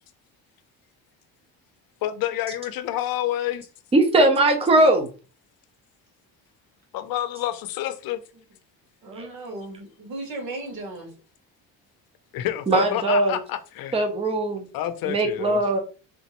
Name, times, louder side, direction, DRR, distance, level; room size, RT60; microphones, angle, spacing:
voice 1, 2.0-3.7 6.9-8.2 12.3-14.0 14.7-15.6, left 12 dB, 70° left, 0.6 m, -28 dB
voice 2, 3.9-5.1 9.2-9.3 12.7-13.4 13.9-14.6 15.1-15.8, right 2 dB, 15° right, 0.7 m, -20 dB
voice 3, 9.0-11.1, right 2 dB, 70° right, 2.0 m, -36 dB
3.6 x 3.0 x 2.9 m
cardioid pair, 130°, 37 cm